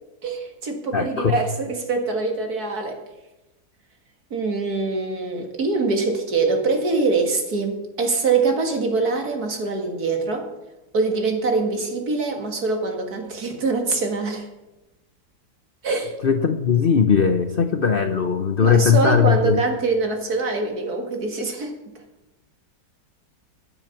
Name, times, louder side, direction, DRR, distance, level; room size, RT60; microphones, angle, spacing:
voice 1, 0.2-3.0 4.3-10.5 10.9-14.5 15.8-16.1 18.6-21.7, right 3 dB, 55° right, 3 dB, 2.6 m, -24 dB
voice 2, 0.9-1.4 16.2-19.6, left 6 dB, 50° left, 7 dB, 0.6 m, -19 dB
21.5 x 7.3 x 6.0 m, 1.0 s
omnidirectional pair, 1.9 m